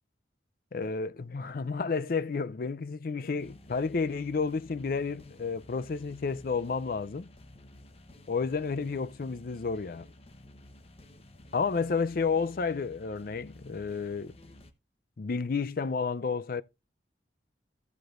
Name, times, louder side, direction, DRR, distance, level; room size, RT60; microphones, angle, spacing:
voice 1, 0.7-7.3 8.3-10.1 11.5-14.3 15.2-16.6, left 5 dB, 55° left, 0.5 m, -31 dB
sound 1, 3.2-14.7, left 1 dB, 35° left, 0.9 m, -53 dB
14.5 x 7.8 x 2.5 m
head